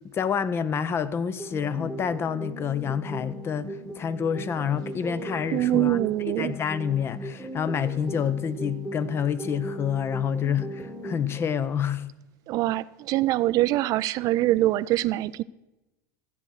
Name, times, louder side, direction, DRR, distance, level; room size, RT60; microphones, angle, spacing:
voice 1, 0.1-6.0 6.3-12.1, left 7 dB, 30° left, 0.7 m, -28 dB
sound 1, 1.4-11.4, right 1 dB, 5° left, 1.4 m, -38 dB
voice 2, 5.5-6.6 12.5-15.4, right 15 dB, 50° right, 0.4 m, -24 dB
13.0 x 8.0 x 6.2 m
hypercardioid pair, 105°, 8 cm